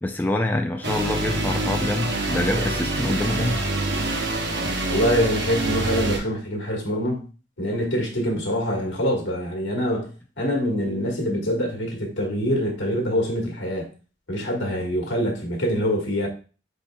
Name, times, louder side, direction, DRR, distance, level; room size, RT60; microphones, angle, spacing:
voice 1, 0.0-3.6, left 1 dB, 10° left, 0.4 m, -25 dB
sound 1, 0.8-6.2, right 2 dB, 70° right, 1.0 m, -26 dB
voice 2, 4.9-7.2 7.6-10.1 10.4-13.9 14.3-16.3, equal, 80° left, 1.5 m, -24 dB
5.3 x 4.2 x 2.3 m
head